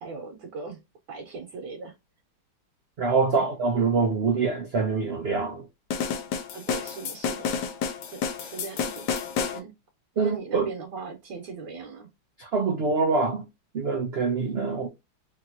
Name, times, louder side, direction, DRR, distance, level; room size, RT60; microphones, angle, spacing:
voice 1, 0.0-0.8 1.1-2.0 3.4-3.5 6.5-7.5 8.1-9.7 10.2-12.1, right 4 dB, 70° right, 1.4 m, -39 dB
voice 2, 3.0-5.7 10.2-10.7 12.4-13.4 13.7-14.9, right 4 dB, 90° right, 0.5 m, -25 dB
sound 1, 5.9-9.6, left 6 dB, 70° left, 1.2 m, -30 dB
3.3 x 2.8 x 2.7 m
omnidirectional pair, 2.0 m